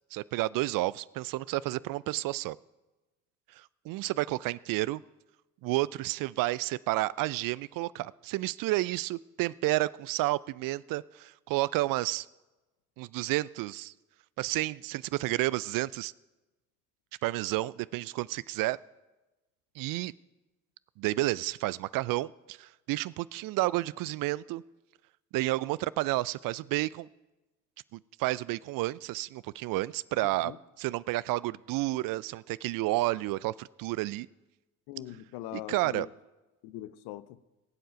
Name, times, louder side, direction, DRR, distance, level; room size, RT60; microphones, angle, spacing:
voice 1, 0.1-2.6 3.6-5.0 5.6-12.3 13.0-13.9 14.4-16.1 17.2-18.8 19.8-20.1 21.0-24.6 25.3-27.1 27.9-30.5 30.8-34.3 35.5-36.1, right 18 dB, 55° right, 0.5 m, -31 dB
voice 2, 34.9-36.1 36.6-37.4, left 14 dB, 65° left, 0.8 m, -41 dB
22.0 x 7.8 x 5.2 m
hypercardioid pair, 50°, 41 cm